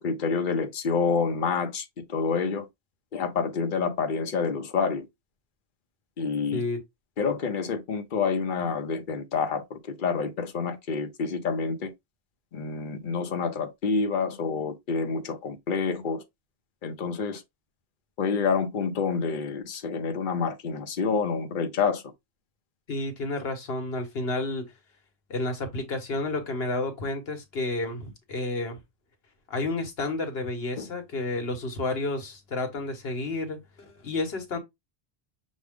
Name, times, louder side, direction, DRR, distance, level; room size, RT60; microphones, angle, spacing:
voice 1, 0.0-2.7 3.1-5.0 6.2-6.6 7.2-11.9 12.5-16.2 16.8-17.4 18.2-22.0 30.8-30.9, left 5 dB, 55° left, 0.9 m, -28 dB
voice 2, 22.9-24.7 25.3-28.8 29.5-34.6, left 2 dB, 70° left, 1.4 m, -31 dB
6.3 x 2.3 x 3.5 m
omnidirectional pair, 1.1 m